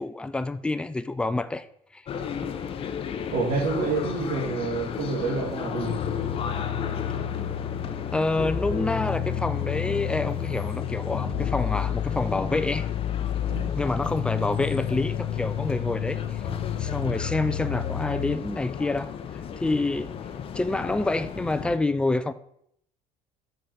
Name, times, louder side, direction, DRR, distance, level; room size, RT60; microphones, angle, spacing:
voice 1, 0.0-1.7 1.9-2.0 8.1-12.9 13.8-16.4 16.8-20.1 20.5-22.3, left 2 dB, 5° left, 0.4 m, -27 dB
sound 1, 2.1-21.8, left 7 dB, 35° left, 0.7 m, -35 dB
voice 2, 3.3-6.0 13.5-13.7, right 3 dB, 75° right, 2.6 m, -28 dB
sound 2, 5.9-18.4, left 10 dB, 60° left, 1.0 m, -30 dB
6.6 x 5.8 x 6.3 m
cardioid pair, 155°, 16 cm